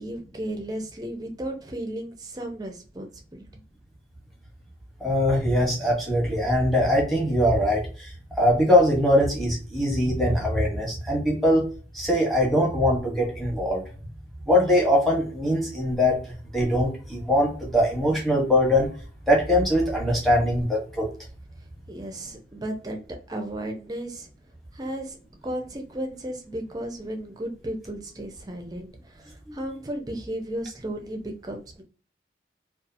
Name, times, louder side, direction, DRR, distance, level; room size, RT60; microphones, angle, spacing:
voice 1, 0.0-3.4 21.9-23.0 23.3-24.3 24.7-25.2 25.4-31.8, right 1 dB, 20° right, 3 dB, 0.5 m, -34 dB
voice 2, 5.0-8.1 8.4-11.7 11.9-13.8 14.5-18.9 19.3-21.1 29.5-29.6, left 1 dB, ahead, -2 dB, 0.9 m, -22 dB
2.6 x 2.4 x 2.5 m, 0.39 s
head